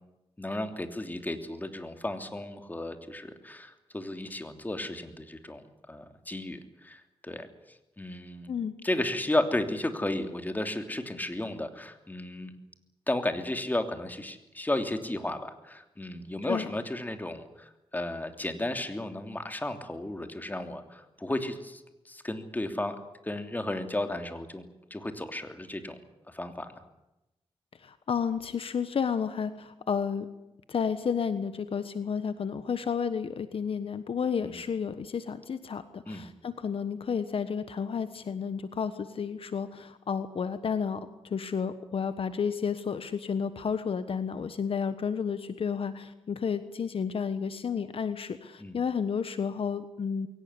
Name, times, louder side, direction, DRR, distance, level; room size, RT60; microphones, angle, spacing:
voice 1, 0.4-7.5 8.0-8.5 8.8-12.5 13.1-23.0 23.2-24.6 24.9-26.0 26.3-26.7 34.4-34.5 36.1-36.2 48.6-48.8, left 1 dB, 15° left, 6 dB, 3.1 m, -33 dB
voice 2, 27.8-30.3 30.7-50.3, left 6 dB, 65° left, 11 dB, 1.3 m, -31 dB
22.5 x 18.0 x 9.8 m, 0.94 s
cardioid pair, 80°, 10 cm